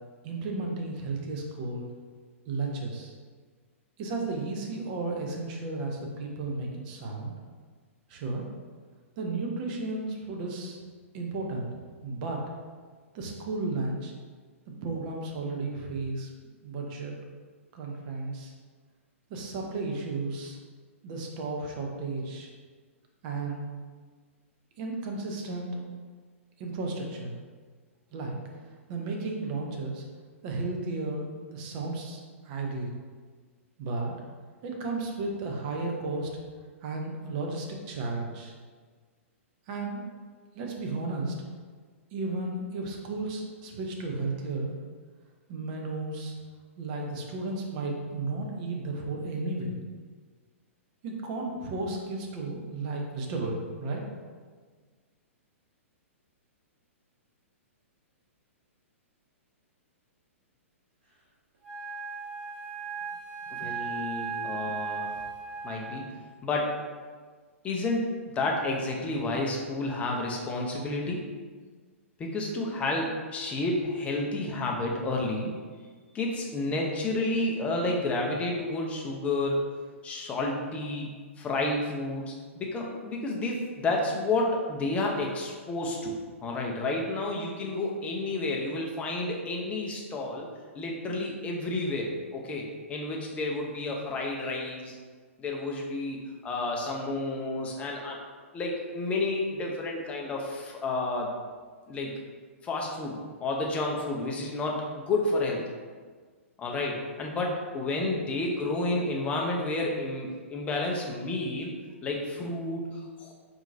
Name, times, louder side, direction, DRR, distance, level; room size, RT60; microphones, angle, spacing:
voice 1, 0.2-1.9 2.5-3.1 4.0-7.3 8.1-8.5 9.2-10.8 11.1-11.7 12.0-12.4 13.1-14.1 14.8-16.3 16.6-17.1 17.7-18.5 19.3-20.6 21.0-22.5 23.2-23.7 24.8-25.8 26.6-27.3 28.1-28.4 28.9-30.0 30.4-32.9 33.8-34.1 34.6-36.3 36.8-38.5 39.7-40.0 40.5-41.3 42.1-44.7 45.5-46.3 46.8-49.8 51.0-54.0, right 3 dB, 40° right, 1 dB, 0.6 m, -33 dB
Wind instrument woodwind instrument, 61.6-66.2, right 5 dB, 55° right, 1.3 m, -36 dB
voice 2, 63.6-65.1 65.6-66.0 66.4-66.8 67.6-68.1 68.3-71.2 72.2-75.5 76.1-79.6 80.0-81.1 81.4-86.1 86.4-90.5 90.7-95.0 95.4-96.2 96.4-98.2 98.5-101.3 101.9-102.1 102.6-105.6 106.6-111.7 112.0-113.3, left 2 dB, 15° left, -1 dB, 0.6 m, -30 dB
4.3 x 2.7 x 2.6 m, 1.5 s
figure-of-eight pair, 110°, 7 cm